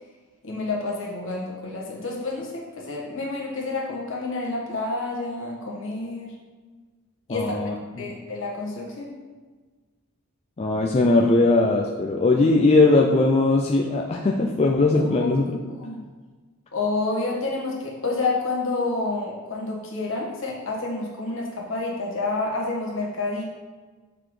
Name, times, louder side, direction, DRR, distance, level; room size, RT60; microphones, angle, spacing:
voice 1, 0.4-6.3 7.3-7.6 8.0-9.1 14.9-15.3 15.7-16.0 16.7-23.4, left 3 dB, 60° left, -2 dB, 1.5 m, -29 dB
voice 2, 7.3-8.1 10.6-15.5, left 2 dB, 30° left, 0 dB, 0.4 m, -20 dB
6.9 x 3.9 x 4.8 m, 1.4 s
head